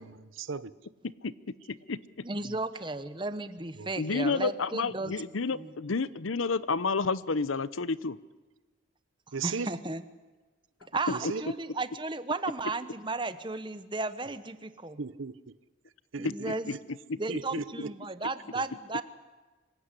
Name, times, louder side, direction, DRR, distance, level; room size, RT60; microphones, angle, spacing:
voice 1, 0.4-0.7 3.8-3.9 9.3-9.7 11.3-11.4 15.0-15.3 16.1-16.3 17.3-17.6, right 5 dB, 80° right, 17 dB, 0.8 m, -34 dB
voice 2, 2.2-5.1 5.5-5.7 9.4-10.0 10.9-15.0 16.2-16.7 17.2-19.0, right 3 dB, 25° right, 12 dB, 1.0 m, -34 dB
voice 3, 4.0-8.2 16.2-16.8 17.1-17.2, left 4 dB, 85° left, 17 dB, 0.8 m, -30 dB
25.5 x 16.5 x 10.0 m, 1.3 s
head